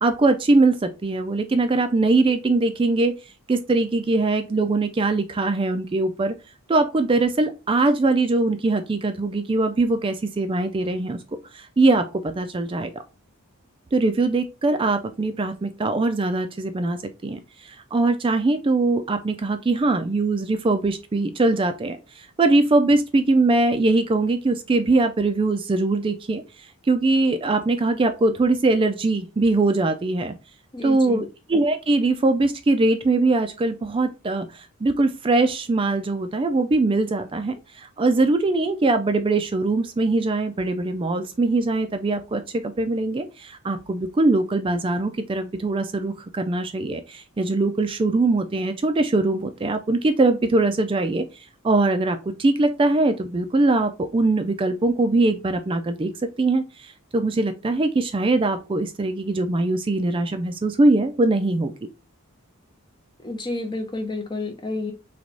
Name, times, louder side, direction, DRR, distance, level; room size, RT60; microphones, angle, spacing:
voice 1, 0.0-3.1 3.5-6.3 6.7-11.2 11.5-13.0 13.9-30.3 30.8-61.7, right 2 dB, 25° right, 0.3 m, -22 dB
voice 2, 30.7-31.2 63.2-64.9, left 2 dB, 20° left, 0.6 m, -30 dB
3.3 x 3.0 x 3.8 m
head